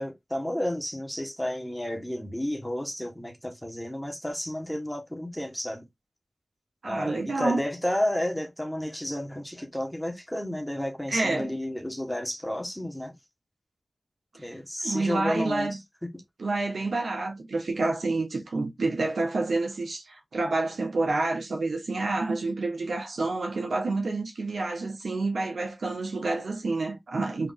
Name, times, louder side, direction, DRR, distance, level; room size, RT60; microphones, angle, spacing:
voice 1, 0.0-5.9 6.8-13.1 14.4-15.8, left 1 dB, 5° left, 1.5 m, -31 dB
voice 2, 6.8-7.6 11.1-11.5 14.3-14.5 14.8-15.8 16.4-27.5, right 3 dB, 85° right, 1.2 m, -28 dB
3.9 x 3.3 x 3.6 m
cardioid pair, 50°, 0 cm